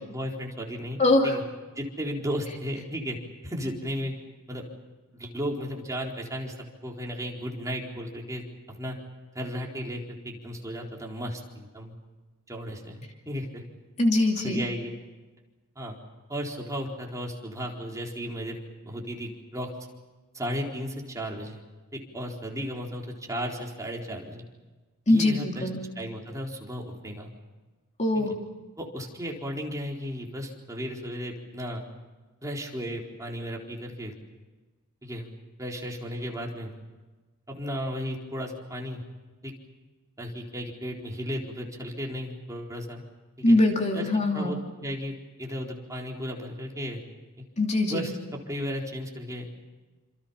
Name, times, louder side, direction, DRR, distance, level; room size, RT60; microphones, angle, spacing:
voice 1, 0.0-1.4 1.8-3.2 3.4-4.1 4.5-4.6 5.1-6.5 6.8-9.0 9.3-11.9 12.5-13.6 14.4-14.9 15.8-16.0 16.3-18.6 18.8-19.7 20.3-21.6 21.9-24.4 25.1-25.7 26.0-27.3 28.2-28.3 28.8-31.8 32.4-34.1 35.0-35.3 35.6-36.8 37.5-39.0 39.4-39.5 40.2-43.0 43.4-43.6 43.9-47.0 47.4-47.5 47.9-49.5, equal, 15° right, -1 dB, 4.2 m, -35 dB
voice 2, 1.0-1.4 14.0-14.6 25.1-25.9 28.0-28.4 43.4-44.6 47.6-48.1, left 2 dB, 30° left, 1 dB, 2.8 m, -22 dB
28.5 x 27.0 x 5.7 m, 1.2 s
head